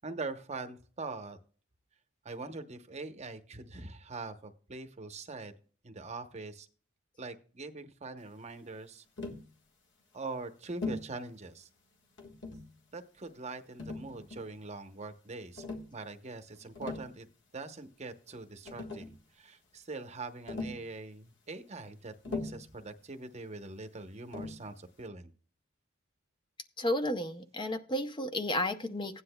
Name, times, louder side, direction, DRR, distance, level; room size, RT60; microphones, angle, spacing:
voice 1, 0.0-1.4 2.2-5.5 5.8-6.7 7.2-9.0 10.1-11.7 12.9-15.6 15.9-17.3 17.5-25.3, right 3 dB, 35° right, 8 dB, 0.8 m, -43 dB
Tap, 9.2-9.5 10.8-11.1 12.2-12.7 13.8-14.6 15.6-15.9 16.6-17.1 18.3-18.4 18.6-19.2 20.5-20.9 22.2-22.7 24.3-24.7, left 3 dB, 60° left, 1.5 m, -39 dB
voice 2, 26.8-29.2, left 1 dB, 25° left, 8 dB, 0.6 m, -32 dB
15.5 x 9.8 x 2.2 m, 0.40 s
head